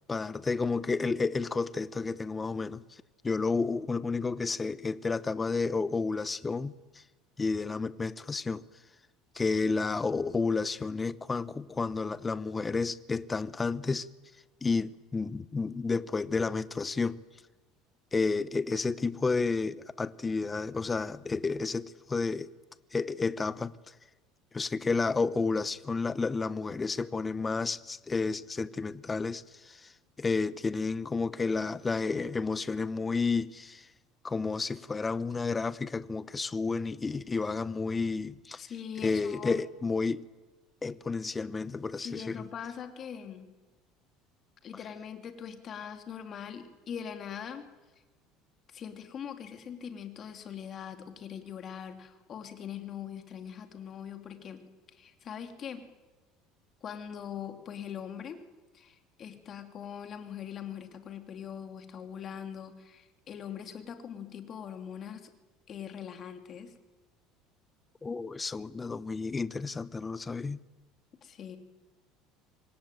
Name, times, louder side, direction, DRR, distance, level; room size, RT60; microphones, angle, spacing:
voice 1, 0.1-6.7 7.4-8.6 9.3-14.1 14.6-17.2 18.1-22.5 22.9-23.8 24.5-29.9 30.2-33.9 34.2-38.6 39.0-40.3 40.8-42.5 68.0-70.6, left 4 dB, 15° left, 0.9 m, -31 dB
voice 2, 38.6-39.6 42.0-43.5 44.6-47.7 48.7-54.6 54.9-55.9 56.8-58.4 58.7-65.3 65.7-66.7 71.2-71.6, left 8 dB, 35° left, 2.9 m, -42 dB
26.0 x 22.0 x 9.3 m
cardioid pair, 135°, 0 cm